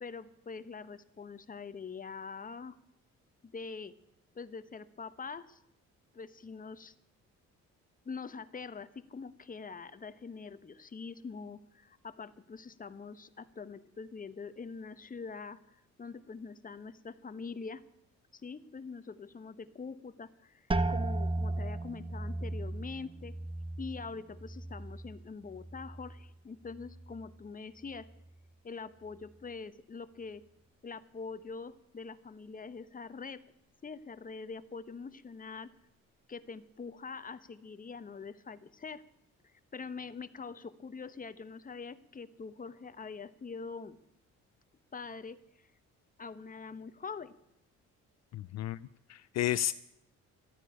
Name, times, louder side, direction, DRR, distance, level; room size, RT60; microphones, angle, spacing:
voice 1, 0.0-2.7 3.4-3.9 4.3-5.6 6.1-6.9 8.0-15.6 16.0-17.8 18.3-23.4 23.8-28.1 28.6-30.4 30.8-33.4 33.8-35.7 36.3-39.0 39.7-44.0 44.9-45.7 46.2-47.4, left 5 dB, 30° left, 13 dB, 1.0 m, -44 dB
sound 1, 20.7-26.3 26.7-27.4 27.9-28.3, right 2 dB, 15° right, 1.0 m, -36 dB
voice 2, 48.3-49.7, left 12 dB, 60° left, 15 dB, 0.5 m, -33 dB
14.0 x 9.8 x 9.9 m, 0.82 s
cardioid pair, 90°, 30 cm